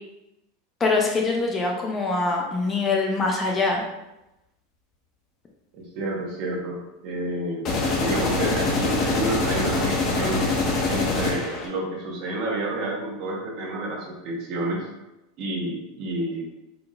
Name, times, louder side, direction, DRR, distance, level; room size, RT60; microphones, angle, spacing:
voice 1, 0.8-3.8, left 3 dB, 20° left, 0 dB, 0.6 m, -23 dB
voice 2, 5.7-10.4 10.8-14.9 15.4-16.5, right 1 dB, 50° right, -1 dB, 1.2 m, -30 dB
sound 1, 7.6-11.7, left 3 dB, 35° left, 1.4 m, -24 dB
4.6 x 3.8 x 2.5 m, 0.94 s
supercardioid pair, 140°, 0 cm